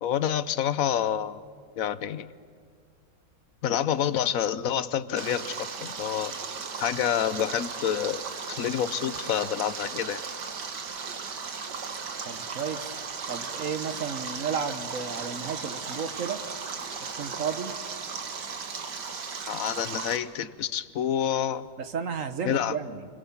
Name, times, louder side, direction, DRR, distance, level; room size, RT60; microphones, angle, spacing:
voice 1, 0.0-1.4 1.8-2.3 3.6-6.3 6.8-8.2 8.5-10.2 19.5-21.7 22.4-22.7, left 9 dB, 60° left, 15 dB, 1.2 m, -28 dB
Stream, 5.2-20.2, right 5 dB, 80° right, 2.2 m, -36 dB
voice 2, 12.3-13.0 13.3-16.4 17.2-17.8 21.8-23.1, right 6 dB, 55° right, 10 dB, 1.5 m, -33 dB
29.5 x 22.5 x 7.3 m, 2.2 s
omnidirectional pair, 1.8 m